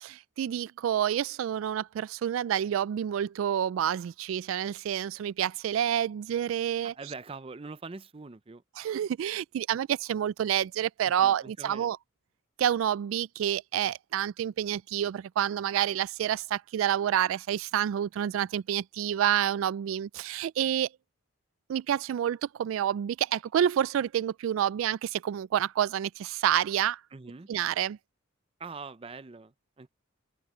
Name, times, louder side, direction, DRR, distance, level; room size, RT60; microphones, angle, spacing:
voice 1, 0.0-6.9 8.8-12.0 12.6-20.9 21.7-27.0 27.5-28.0, right 10 dB, 85° right, 0.3 m, -28 dB
voice 2, 6.8-8.6 11.2-11.9 27.1-27.5 28.6-29.9, right 4 dB, 30° right, 0.5 m, -43 dB
head